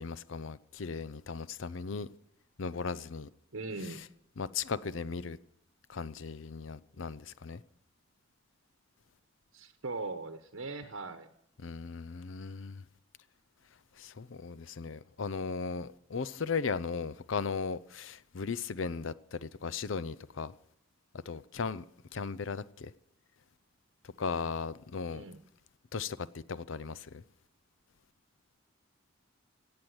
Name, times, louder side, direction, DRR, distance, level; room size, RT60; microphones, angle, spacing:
voice 1, 0.0-2.1 2.6-3.3 3.8-4.0 4.4-5.4 5.9-7.6 11.6-12.8 14.0-20.5 21.3-21.8 22.1-22.9 24.0-25.2 25.9-27.2, left 5 dB, 70° left, 0.6 m, -37 dB
voice 2, 3.5-4.0 9.5-11.3 25.1-25.4, right 3 dB, 90° right, 1.0 m, -40 dB
16.5 x 8.7 x 7.9 m
head